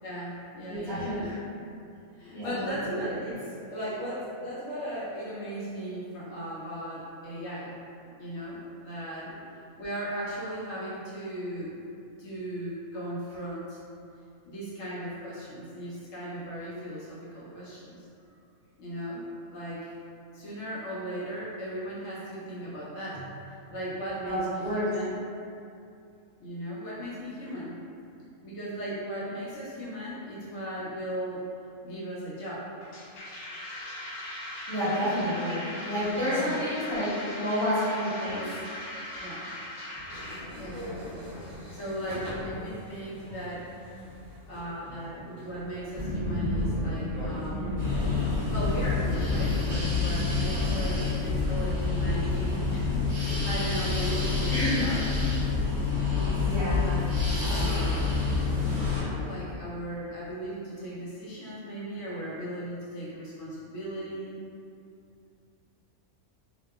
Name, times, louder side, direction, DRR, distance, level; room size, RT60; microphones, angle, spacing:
voice 1, 0.0-1.4 2.2-7.7 8.2-9.3 9.8-11.8 12.2-13.8 14.5-18.0 18.8-19.2 19.5-19.9 20.3-23.3 23.7-25.1 26.4-27.8 28.4-31.4 31.8-32.7 36.2-36.6 39.2-39.5 40.5-41.2 41.7-43.7 44.5-47.8 48.5-55.0 56.1-56.5 56.8-57.1 57.5-58.1 58.6-64.4, right 1 dB, 70° left, -8 dB, 0.9 m, -37 dB
voice 2, 0.7-1.4 2.3-2.9 24.2-24.9 34.7-38.4 54.5-54.8 56.4-56.9, equal, 20° left, -16 dB, 0.9 m, -29 dB
sound 1, 32.8-40.4, left 1 dB, 85° left, 0.5 m, -39 dB
sound 2, 40.0-51.1, left 1 dB, 85° right, 0.3 m, -35 dB
sound 3, 47.8-59.0, left 4 dB, 45° right, 0.7 m, -27 dB
2.7 x 2.2 x 2.2 m, 2.5 s
omnidirectional pair, 1.6 m